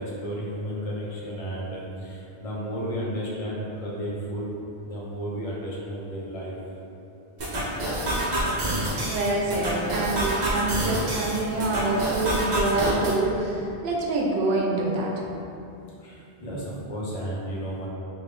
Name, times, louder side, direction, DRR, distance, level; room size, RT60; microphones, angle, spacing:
voice 1, 0.0-4.6 4.8-6.5 16.0-17.9, equal, 40° left, -6 dB, 0.7 m, -33 dB
sound 1, 7.4-13.2, right 1 dB, 50° right, 0.7 m, -27 dB
voice 2, 9.0-15.1, right 2 dB, 80° right, -2 dB, 0.8 m, -26 dB
3.5 x 2.6 x 3.2 m, 2.7 s
omnidirectional pair, 1.1 m